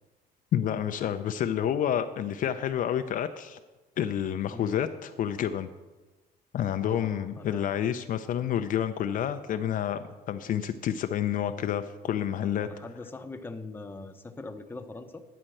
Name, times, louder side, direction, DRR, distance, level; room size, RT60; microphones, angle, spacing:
voice 1, 0.5-3.6 4.0-5.7 6.5-12.7, left 9 dB, 55° left, 9 dB, 0.5 m, -29 dB
voice 2, 6.8-7.7 12.6-15.2, left 3 dB, 10° left, 6 dB, 0.7 m, -41 dB
10.0 x 4.3 x 7.7 m, 1.2 s
cardioid pair, 110°, 17 cm